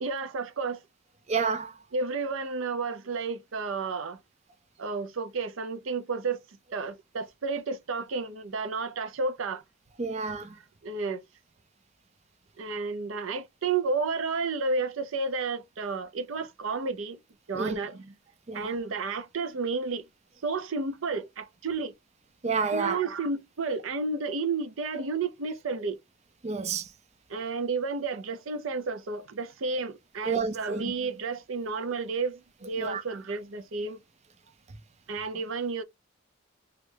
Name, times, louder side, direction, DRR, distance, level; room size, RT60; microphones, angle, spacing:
voice 1, 0.0-0.8 1.9-4.2 4.8-9.6 10.8-11.2 12.6-17.2 17.5-18.1 18.5-20.1 20.4-21.9 22.7-26.0 27.3-34.0 35.1-35.8, right 4 dB, 85° right, 0.6 m, -31 dB
voice 2, 1.3-1.7 10.0-10.5 17.6-17.8 18.5-18.6 22.4-23.0 26.4-26.8 30.3-30.8 32.8-33.0, right 4 dB, 35° right, 0.4 m, -29 dB
3.1 x 2.4 x 3.3 m
head